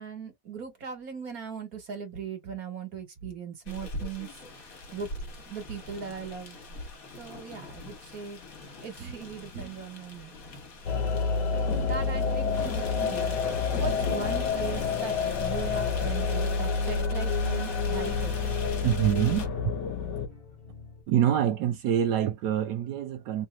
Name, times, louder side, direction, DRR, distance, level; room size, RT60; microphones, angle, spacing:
voice 1, 0.0-4.3 4.6-5.1 5.5-6.6 7.2-8.4 8.8-10.4 11.5-13.4 13.7-18.5, right 6 dB, 60° right, 2.0 m, -39 dB
sound 1, 3.7-19.5, left 2 dB, 55° left, 1.7 m, -42 dB
sound 2, 10.9-20.3, left 5 dB, 85° left, 1.5 m, -28 dB
sound 3, 16.0-21.0, left 2 dB, 40° left, 1.7 m, -50 dB
voice 2, 18.8-19.7 21.1-23.5, right 10 dB, 80° right, 1.3 m, -26 dB
3.8 x 2.8 x 2.3 m
omnidirectional pair, 1.8 m